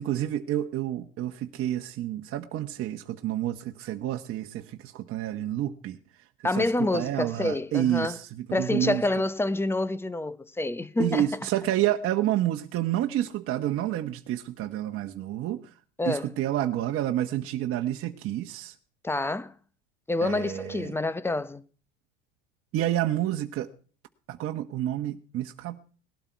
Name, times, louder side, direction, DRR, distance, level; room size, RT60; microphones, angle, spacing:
voice 1, 0.0-6.0 6.6-9.0 11.0-15.6 16.1-18.7 20.2-20.9 22.7-23.7 24.3-25.9, right 13 dB, 40° right, 1.3 m, -29 dB
voice 2, 6.4-8.2 8.5-11.3 16.0-16.3 19.0-19.5 20.1-21.6, left 2 dB, 5° left, 0.8 m, -27 dB
19.0 x 12.5 x 4.6 m
supercardioid pair, 115°, 35 cm